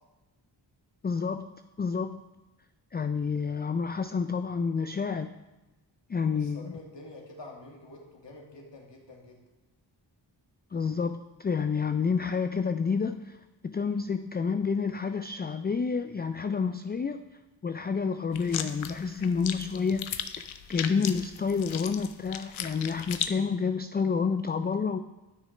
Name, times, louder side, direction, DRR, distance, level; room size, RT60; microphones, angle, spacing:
voice 1, 1.0-1.5 1.8-2.2 2.9-5.3 6.1-6.8 10.7-13.4 13.6-17.2 17.6-20.4 20.7-25.0, left 5 dB, 25° left, 8 dB, 0.3 m, -29 dB
voice 2, 6.3-9.4, left 2 dB, 65° left, -1 dB, 2.1 m, -47 dB
sound 1, 18.3-23.3, left 9 dB, 90° left, 0.6 m, -36 dB
12.5 x 6.2 x 3.3 m, 1.1 s
cardioid pair, 45°, 46 cm